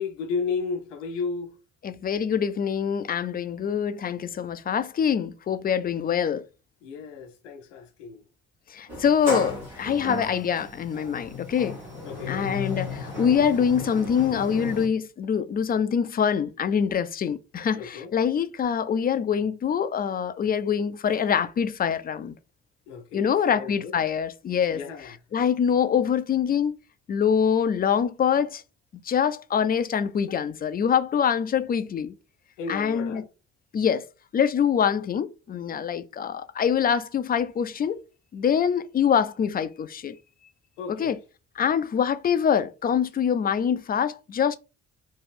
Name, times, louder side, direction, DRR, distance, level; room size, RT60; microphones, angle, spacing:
voice 1, 0.0-1.5 6.8-8.2 12.0-12.5 17.8-18.1 22.9-24.0 24.7-25.2 32.6-33.3 40.8-41.1, left 5 dB, 80° left, 0.7 m, -33 dB
voice 2, 1.8-6.4 8.7-11.8 12.3-22.4 23.1-24.8 25.3-26.7 27.1-28.6 29.0-32.1 32.7-33.2 33.7-34.1 34.3-38.0 38.3-40.2 40.9-41.2 41.6-44.6, left 7 dB, 25° left, 0.4 m, -24 dB
Sliding door, 8.9-14.9, left 3 dB, 90° right, 1.6 m, -35 dB
3.1 x 2.4 x 3.2 m
figure-of-eight pair, 40°, 36 cm